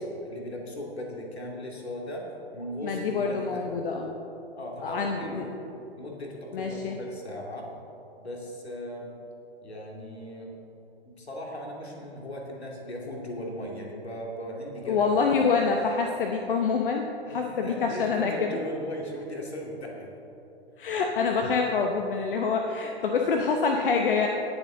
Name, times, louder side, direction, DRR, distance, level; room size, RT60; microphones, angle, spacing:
voice 1, 0.2-3.7 4.6-5.5 5.9-7.7 8.2-9.1 9.6-10.5 11.0-15.1 17.3-20.1, left 1 dB, 80° left, -1 dB, 2.5 m, -37 dB
voice 2, 2.8-4.1 4.8-5.4 6.5-7.0 14.8-18.5 20.8-24.3, left 5 dB, 55° left, 3 dB, 0.9 m, -26 dB
18.5 x 7.2 x 3.8 m, 2.8 s
figure-of-eight pair, 115°, 32 cm